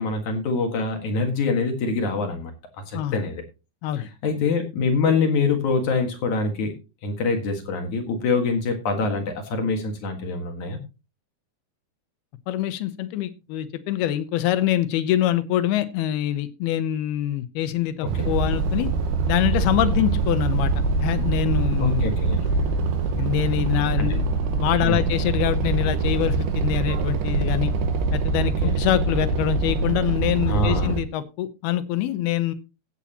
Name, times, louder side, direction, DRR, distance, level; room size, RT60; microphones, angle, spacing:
voice 1, 0.0-2.5 2.9-3.4 4.2-6.7 7.0-10.8 18.0-18.3 21.8-22.4 24.0-24.1 24.8-25.1 28.6-28.7 30.5-30.9, left 4 dB, 55° left, 2.8 m, -25 dB
voice 2, 12.5-18.9 19.3-20.7 21.0-22.1 23.2-24.3 24.6-27.7 28.1-32.5, left 12 dB, 80° left, 2.8 m, -25 dB
sound 1, 18.1-31.0, right 4 dB, 80° right, 3.2 m, -24 dB
16.0 x 8.4 x 2.9 m
omnidirectional pair, 4.5 m